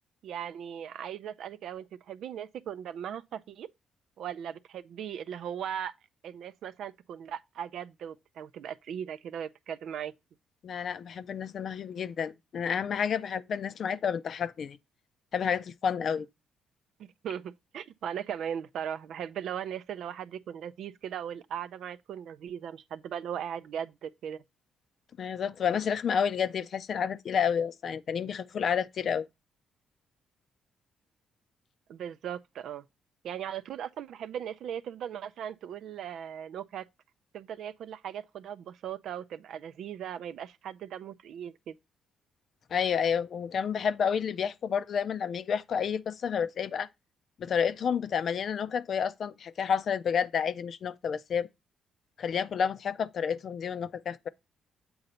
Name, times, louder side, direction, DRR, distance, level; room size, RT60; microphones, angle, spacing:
voice 1, 0.2-3.7 4.2-5.9 6.2-10.1 17.2-24.4 31.9-32.8 33.2-36.8 37.3-41.8, right 9 dB, 75° right, 0.5 m, -38 dB
voice 2, 10.6-14.8 15.3-16.3 25.2-29.3 42.7-46.9 47.4-51.5 52.2-54.3, left 7 dB, 55° left, 0.5 m, -30 dB
7.8 x 3.9 x 4.2 m
cardioid pair, 90°, 0 cm